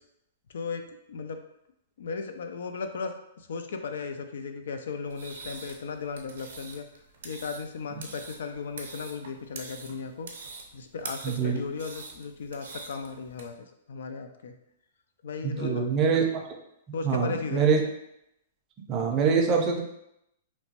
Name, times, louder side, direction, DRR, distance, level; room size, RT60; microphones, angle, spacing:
voice 1, 0.5-1.4 2.0-3.1 3.4-6.9 7.2-10.3 10.7-14.5 15.2-15.8 16.9-17.7, left 5 dB, 80° left, 7 dB, 0.3 m, -36 dB
sound 1, 5.0-13.4, right 4 dB, 75° right, 0.6 m, -44 dB
voice 2, 11.2-11.6 15.4-16.5 17.0-17.8 18.9-19.8, right 5 dB, 25° right, 2 dB, 0.4 m, -24 dB
2.9 x 2.1 x 2.8 m, 0.80 s
hypercardioid pair, 150°, 0 cm